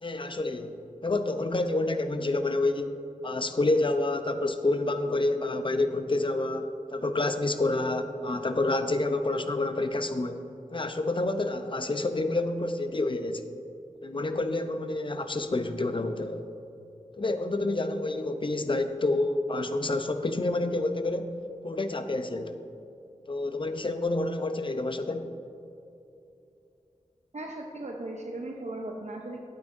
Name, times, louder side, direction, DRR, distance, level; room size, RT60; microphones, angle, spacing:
voice 1, 0.0-3.0 3.2-10.4 10.7-13.5 14.0-16.4 17.2-21.3 21.6-22.6 23.3-25.3, left 2 dB, 40° left, 8 dB, 0.6 m, -28 dB
voice 2, 27.3-29.4, right 2 dB, 55° right, 1 dB, 0.7 m, -37 dB
12.0 x 9.1 x 2.6 m, 2.8 s
wide cardioid pair, 50°, 14 cm